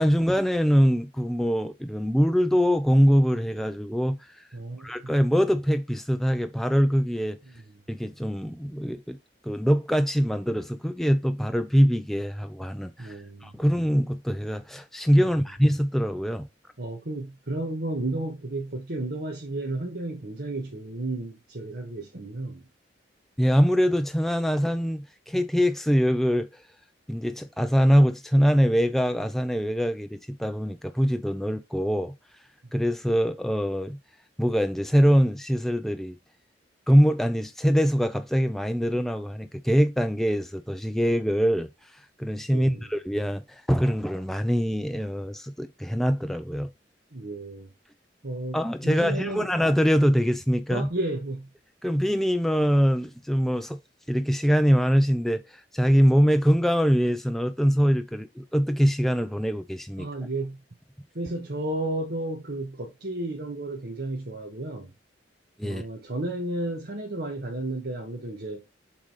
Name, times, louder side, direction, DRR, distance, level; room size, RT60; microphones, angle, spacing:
voice 1, 0.0-4.4 4.8-7.4 7.9-9.2 9.4-16.5 23.4-26.6 27.1-32.1 32.7-34.0 34.4-36.2 36.9-46.7 48.5-50.9 51.8-53.8 54.1-60.1 65.6-65.8, equal, ahead, 0.4 m, -23 dB
voice 2, 4.5-5.1 7.4-7.5 13.0-13.6 16.8-22.7 42.5-42.9 47.1-47.7 48.2-49.5 50.7-51.5 60.0-60.6 61.1-64.9 65.6-68.6, right 2 dB, 60° right, 1.5 m, -33 dB
7.4 x 3.9 x 4.8 m
head